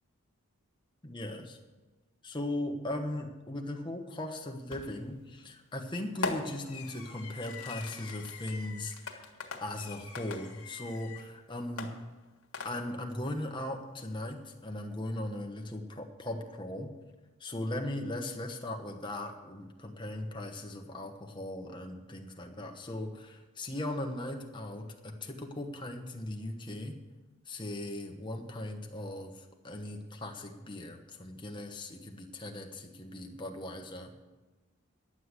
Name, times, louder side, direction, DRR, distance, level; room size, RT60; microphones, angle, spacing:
voice 1, 1.0-1.6 2.2-9.2 9.6-11.9 12.6-16.9 17.4-27.0 27.5-34.2, left 1 dB, 20° left, 3 dB, 1.2 m, -38 dB
Fireworks, 4.7-5.1 6.2-11.3 11.8-13.1, left 4 dB, 75° left, 1.7 m, -41 dB
11.0 x 7.9 x 8.1 m, 1.2 s
head